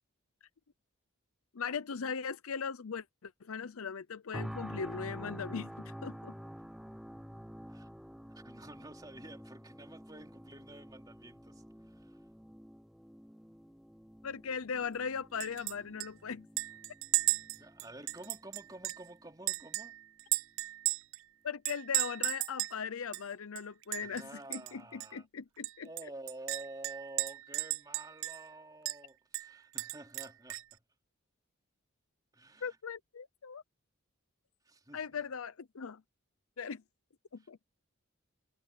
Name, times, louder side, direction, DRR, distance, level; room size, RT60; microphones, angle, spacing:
voice 1, 1.5-6.3 14.2-16.5 21.4-25.9 32.6-33.6 34.9-36.0 36.6-36.8 37.3-37.6, left 6 dB, 85° left, 0.6 m, -39 dB
sound 1, 4.3-19.3 19.8-20.0, equal, ahead, 1.2 m, -49 dB
voice 2, 8.3-12.2 17.6-19.9 24.0-25.3 25.8-30.8 32.3-32.8 34.7-35.2 37.4-37.5, right 1 dB, 15° right, 3.8 m, -50 dB
Chink clink, 15.4-15.7 16.0-16.1 16.6-19.1 19.5-21.2 21.6-22.8 23.1-23.2 23.6-24.2 24.5-24.7 25.0-25.1 25.6-28.5 28.9-29.0 29.3-30.7, right 20 dB, 65° right, 0.3 m, -35 dB
head